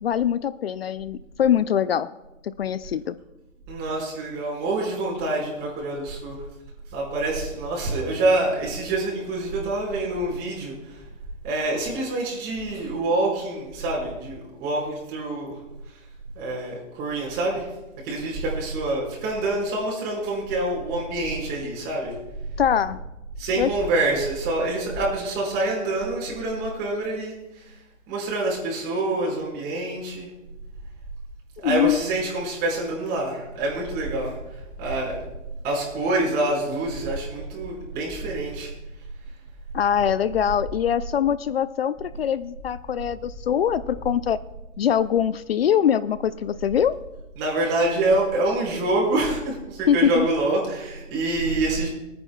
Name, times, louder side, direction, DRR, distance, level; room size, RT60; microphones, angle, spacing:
voice 1, 0.0-2.1 2.4-3.2 22.6-23.0 23.6-23.7 31.6-32.0 39.7-44.4 44.8-47.0 49.9-50.3, left 9 dB, 50° left, 16 dB, 0.4 m, -23 dB
voice 2, 3.7-6.4 6.9-10.7 11.4-15.6 16.3-17.7 18.0-22.1 23.4-27.4 28.1-30.3 31.6-34.3 34.8-35.2 35.6-38.7 47.4-51.9, right 2 dB, 25° right, -3 dB, 5.1 m, -26 dB
25.5 x 9.4 x 2.3 m, 0.98 s
hypercardioid pair, 140°, 39 cm